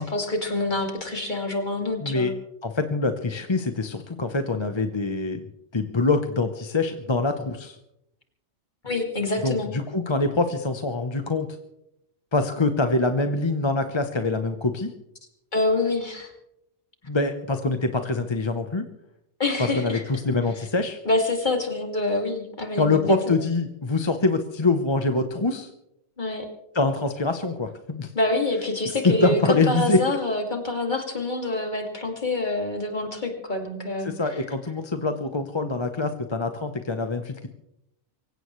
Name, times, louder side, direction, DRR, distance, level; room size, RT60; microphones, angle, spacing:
voice 1, 0.0-2.3 8.8-9.7 15.5-16.3 19.4-20.0 21.1-23.3 26.2-26.5 28.1-34.1, left 2 dB, 45° left, 3 dB, 2.6 m, -26 dB
voice 2, 2.0-2.3 2.6-5.4 5.7-7.8 9.4-11.5 12.3-14.9 17.1-18.9 19.6-21.0 22.8-25.7 26.7-28.1 29.0-30.0 34.0-37.5, left 3 dB, 25° left, 7 dB, 0.9 m, -24 dB
24.5 x 16.0 x 3.2 m, 0.81 s
omnidirectional pair, 1.2 m